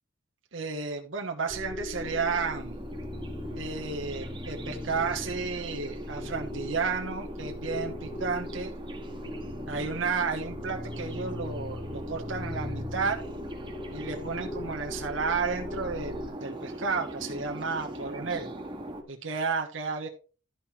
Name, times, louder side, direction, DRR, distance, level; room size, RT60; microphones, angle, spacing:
voice 1, 0.5-2.8 3.6-8.7 9.7-13.2 13.9-18.5 19.1-20.1, right 4 dB, 85° right, 1 dB, 1.2 m, -32 dB
sound 1, 1.5-16.3, left 1 dB, 15° left, 0.4 m, -39 dB
sound 2, 1.9-19.0, right 1 dB, 25° right, 1.9 m, -41 dB
12.0 x 5.9 x 4.4 m, 0.37 s
head